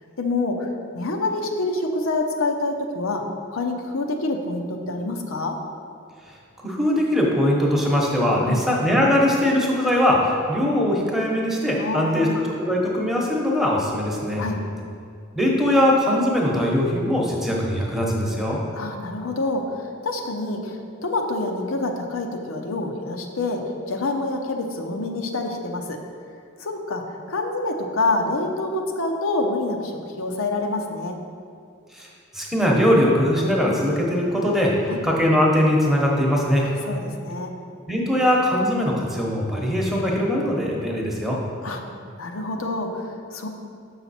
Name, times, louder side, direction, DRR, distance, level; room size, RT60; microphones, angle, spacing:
voice 1, 0.2-0.7 0.9-3.2 3.5-5.5 8.4-8.6 11.8-12.5 14.4-14.6 18.7-23.6 23.9-26.0 26.6-27.0 27.3-31.2 34.9-35.1 36.6-37.5 41.6-41.8 42.2-43.5, left 2 dB, 80° left, 3 dB, 0.7 m, -27 dB
voice 2, 6.6-12.3 12.6-14.4 15.3-18.6 31.9-32.1 32.3-34.7 35.0-36.7 37.9-41.4, left 1 dB, ahead, -3 dB, 0.9 m, -21 dB
6.8 x 5.7 x 4.2 m, 2.3 s
head